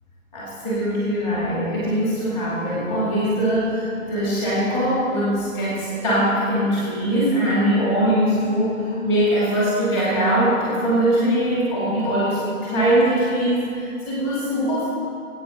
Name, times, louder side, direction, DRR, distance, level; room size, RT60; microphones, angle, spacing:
voice 1, 0.3-14.8, right 1 dB, 20° left, -8 dB, 2.4 m, -21 dB
19.5 x 8.8 x 4.3 m, 2.5 s
figure-of-eight pair, 155°, 43 cm